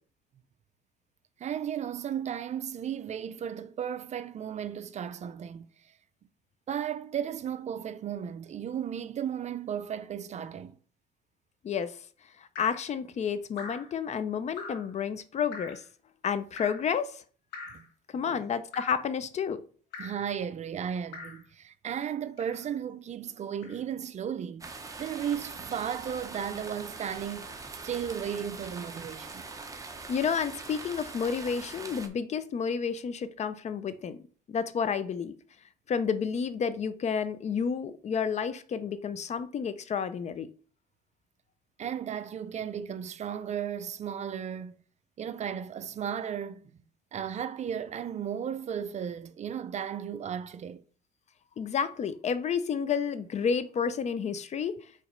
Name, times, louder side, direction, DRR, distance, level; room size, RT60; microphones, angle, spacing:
voice 1, 1.4-5.7 6.7-10.8 17.7-17.9 18.2-18.4 20.0-24.7 25.0-27.5 27.8-29.5 41.8-44.8 45.2-46.7 47.1-50.8, right 8 dB, 40° right, 0.5 m, -35 dB
voice 2, 11.6-12.0 12.4-15.8 16.2-17.2 18.1-19.6 30.1-34.2 34.5-35.3 35.9-40.5 51.6-54.8, left 6 dB, 40° left, 0.6 m, -30 dB
Drip, 12.6-12.9 13.6-13.9 14.6-14.9 15.5-15.8 16.6-16.9 17.5-17.9 18.7-19.1 19.9-20.3 21.1-21.5 22.4-22.7 23.6-23.8, left 4 dB, 85° left, 1.6 m, -43 dB
sound 1, 24.6-32.1, right 3 dB, 20° right, 1.0 m, -43 dB
5.1 x 4.1 x 5.1 m
cardioid pair, 110°, 17 cm